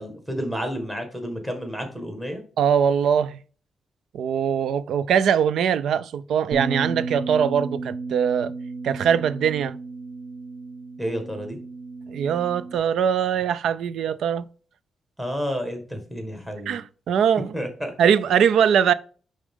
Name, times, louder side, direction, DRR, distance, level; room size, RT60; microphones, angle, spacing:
voice 1, 0.0-2.4 11.0-11.6 15.2-16.8 17.5-17.9, equal, 5° right, 1.5 m, -30 dB
voice 2, 2.6-3.4 4.1-8.5 8.8-9.7 12.1-14.5 16.7-17.5 18.0-18.9, right 8 dB, 80° right, 0.4 m, -21 dB
Bass guitar, 6.5-12.8, right 4 dB, 45° right, 1.9 m, -33 dB
10.0 x 3.7 x 3.6 m
wide cardioid pair, 180°, 0 cm